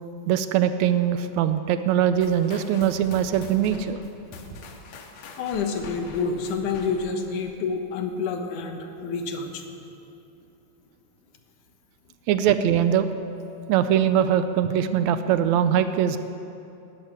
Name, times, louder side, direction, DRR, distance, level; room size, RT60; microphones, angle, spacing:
voice 1, 0.3-4.0 12.3-13.1 13.7-16.2, right 9 dB, 80° right, 11 dB, 1.8 m, -22 dB
sound 1, 2.2-7.3, left 3 dB, 70° left, 2.5 m, -44 dB
voice 2, 5.4-9.6, left 5 dB, 90° left, 5 dB, 2.8 m, -28 dB
13.0 x 11.0 x 9.6 m, 2.8 s
omnidirectional pair, 3.4 m